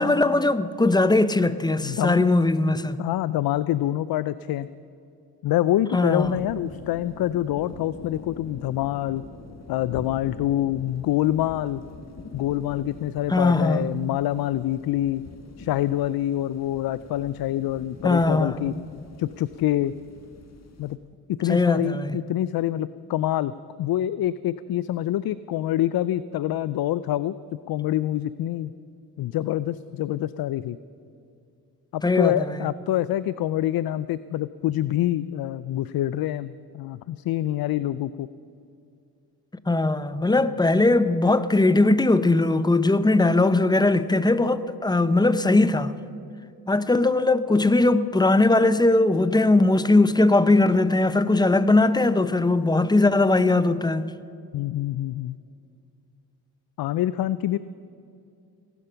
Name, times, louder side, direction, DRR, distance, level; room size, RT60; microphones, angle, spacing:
voice 1, 0.0-3.0 5.9-6.3 13.3-13.8 18.0-18.6 21.5-22.2 32.0-32.4 39.5-45.9 46.7-54.1, left 2 dB, 10° left, 0.7 m, -20 dB
voice 2, 1.8-2.3 3.0-4.7 5.4-9.2 9.7-11.8 12.3-15.2 15.6-18.7 19.2-19.9 20.8-21.0 21.3-28.7 29.2-30.8 31.9-38.3 54.5-55.4 56.8-57.6, left 13 dB, 60° left, 0.5 m, -26 dB
sound 1, 6.2-21.0, left 3 dB, 40° left, 1.7 m, -44 dB
18.5 x 12.0 x 5.7 m
cardioid pair, 65°, 41 cm